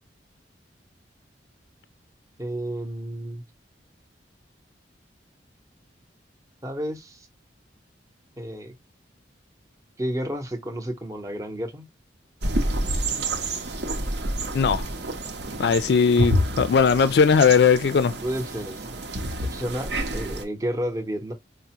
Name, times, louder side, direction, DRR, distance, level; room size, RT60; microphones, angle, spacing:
voice 1, 2.4-3.4 6.6-7.3 8.4-8.7 10.0-11.9 18.2-18.9 19.5-21.3, equal, 15° right, 0.7 m, -31 dB
sound 1, 12.4-20.4, right 1 dB, 65° right, 0.8 m, -28 dB
voice 2, 14.5-14.8 15.6-18.2, left 6 dB, 60° left, 0.3 m, -19 dB
4.8 x 2.0 x 2.8 m
head